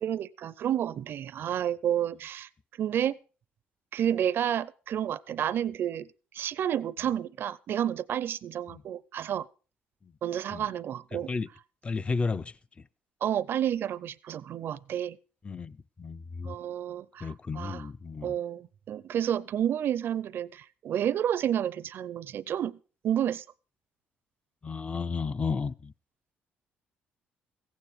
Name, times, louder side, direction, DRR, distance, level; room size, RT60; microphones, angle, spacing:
voice 1, 0.0-2.5 2.8-3.2 3.9-6.1 6.3-9.5 10.2-11.3 13.2-15.2 16.4-17.9 18.2-22.8 23.0-23.4, right 10 dB, 60° right, 0.5 m, -30 dB
voice 2, 11.1-11.5 11.8-12.5 15.4-16.6 17.2-18.4 24.6-25.9, left 4 dB, 25° left, 0.5 m, -33 dB
15.0 x 9.3 x 5.0 m
supercardioid pair, 80°, 4 cm